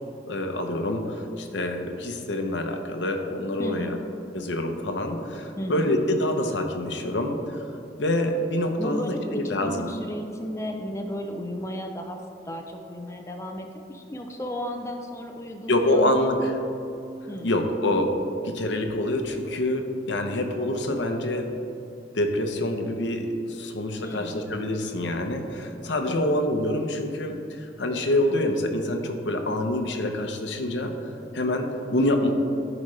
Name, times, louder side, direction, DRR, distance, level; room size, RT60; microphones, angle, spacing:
voice 1, 0.3-4.0 4.3-7.7 8.0-9.9 15.7-16.6 17.4-21.6 22.1-30.9 31.3-32.3, left 1 dB, 85° left, 5 dB, 0.8 m, -26 dB
voice 2, 3.6-4.0 5.6-5.9 8.8-12.2 12.5-16.1 17.3-17.5 24.0-24.5 26.1-26.5, equal, 15° left, 3 dB, 0.5 m, -34 dB
14.0 x 5.0 x 3.3 m, 2.9 s
head